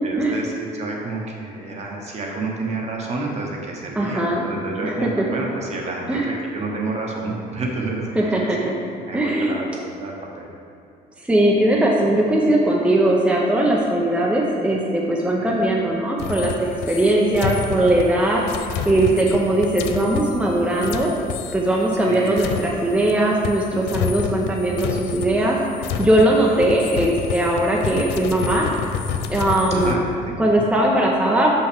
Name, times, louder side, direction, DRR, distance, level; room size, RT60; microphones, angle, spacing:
voice 1, 0.0-8.3 9.1-10.5 15.4-15.6 17.8-17.9 19.1-19.3 22.0-22.7 29.7-30.3, right 3 dB, 40° right, -1 dB, 1.1 m, -29 dB
voice 2, 4.0-4.4 4.8-5.2 6.1-6.3 8.1-8.7 9.1-9.6 11.2-16.5 16.9-18.4 18.8-21.1 21.5-25.6 26.0-28.7 29.3-30.0 30.4-31.6, right 1 dB, 5° right, -3 dB, 0.6 m, -19 dB
sound 1, 16.2-23.2 23.4-29.9, left 7 dB, 90° left, 0.4 m, -29 dB
5.7 x 5.6 x 3.5 m, 2.6 s
cardioid pair, 110°, 17 cm